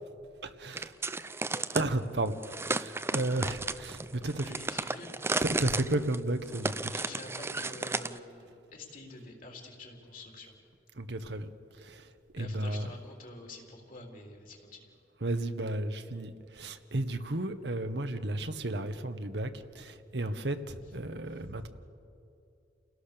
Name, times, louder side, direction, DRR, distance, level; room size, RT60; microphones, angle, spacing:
voice 1, 0.4-0.9 1.7-4.5 5.4-6.9 10.9-12.9 15.2-21.7, right 1 dB, 75° right, 8 dB, 1.3 m, -33 dB
sound 1, 0.7-1.9 2.4-8.2, right 3 dB, 15° right, 0.6 m, -34 dB
voice 2, 4.2-5.4 6.9-10.5 12.4-14.9 20.7-20.8 21.3-21.6, left 2 dB, 50° left, 1 dB, 3.8 m, -47 dB
30.0 x 17.5 x 6.9 m, 2.6 s
head